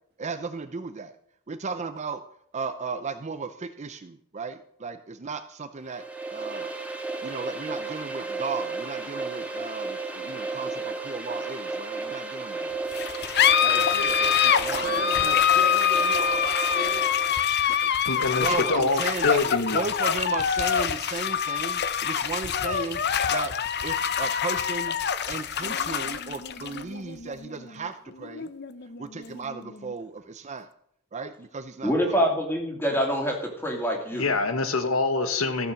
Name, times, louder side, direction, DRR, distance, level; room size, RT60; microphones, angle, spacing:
voice 1, 0.2-1.1 1.5-2.2 2.5-6.0 6.3-6.7 7.2-12.8 13.6-14.2 14.4-15.4 17.7-17.9 18.4-23.5 23.8-25.0 25.3-28.5 29.0-30.7 31.1-32.2, right 4 dB, 35° right, 9 dB, 0.5 m, -35 dB
sound 1, 5.8-17.5, right 3 dB, 5° right, 1.5 m, -33 dB
sound 2, 12.9-29.9, left 8 dB, 50° left, 0.7 m, -25 dB
voice 2, 13.7-17.1, right 3 dB, 50° right, 4 dB, 1.8 m, -36 dB
voice 3, 18.0-19.8 34.1-35.7, left 3 dB, 75° left, 8 dB, 1.4 m, -25 dB
voice 4, 31.8-34.3, equal, 10° left, 1 dB, 2.7 m, -25 dB
14.5 x 7.2 x 6.4 m, 0.70 s
head